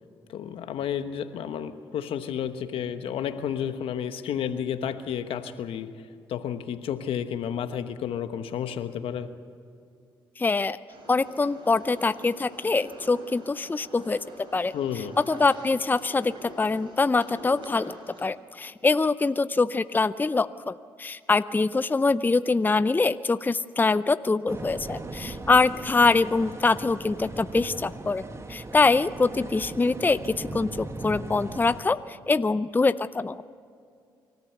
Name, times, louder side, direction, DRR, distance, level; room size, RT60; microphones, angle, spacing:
voice 1, 0.3-5.9 6.3-9.3 14.7-15.1, left 8 dB, 80° left, 10 dB, 1.1 m, -31 dB
voice 2, 10.4-10.8 11.1-14.2 14.5-14.8 15.3-28.2 28.5-33.4, left 3 dB, 20° left, 14 dB, 0.5 m, -24 dB
sound 1, 10.9-18.2, right 1 dB, 60° right, 5.7 m, -45 dB
sound 2, 24.5-31.8, right 2 dB, 30° right, 1.7 m, -38 dB
25.0 x 14.0 x 8.1 m, 2.4 s
supercardioid pair, 65°, 9 cm